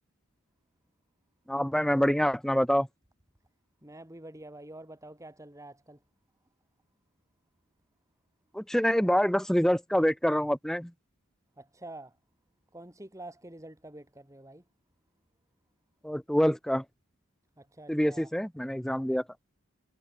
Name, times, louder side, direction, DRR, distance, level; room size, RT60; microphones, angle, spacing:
voice 1, 1.5-2.9 8.5-10.9 16.0-16.8 17.9-19.2, equal, ahead, 0.7 m, -26 dB
voice 2, 3.8-6.0 11.6-12.2 12.7-14.6 17.6-18.3, right 1 dB, 15° right, 3.4 m, -47 dB
head